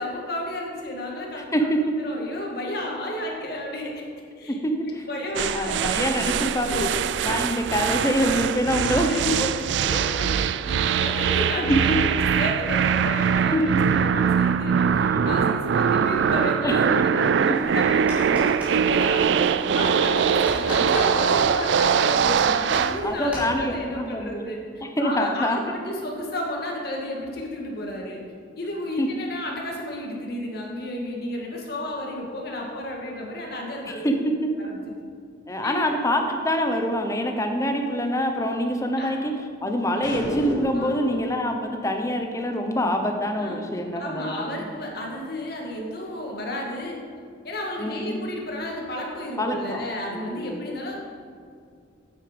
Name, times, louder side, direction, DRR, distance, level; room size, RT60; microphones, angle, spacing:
voice 1, 0.0-1.7 2.0-3.9 4.4-4.6 5.0-5.8 6.7-6.9 9.1-9.2 9.8-13.7 14.0-18.5 18.9-19.3 19.7-28.2 28.6-34.1 34.6-34.8 35.6-35.8 39.0-39.1 40.8-41.2 43.4-43.6 43.9-47.0 47.4-50.9, left 1 dB, 55° left, -1 dB, 1.9 m, -32 dB
voice 2, 4.5-5.0 5.3-6.9 7.2-9.5 11.6-12.0 13.5-14.0 15.1-15.2 16.6-16.7 17.0-17.3 19.5-19.7 23.0-24.4 25.0-25.6 29.0-29.1 33.8-34.5 35.5-39.3 39.6-44.5 47.8-48.2 49.4-49.8 50.1-50.6, equal, 15° left, 4 dB, 0.9 m, -25 dB
sound 1, 5.4-23.0, right 7 dB, 70° right, 0.3 m, -22 dB
sound 2, 17.5-23.5, equal, 5° right, 2.6 m, -38 dB
sound 3, 40.0-41.1, left 1 dB, 90° left, 1.9 m, -31 dB
9.1 x 8.5 x 5.3 m, 2.3 s
head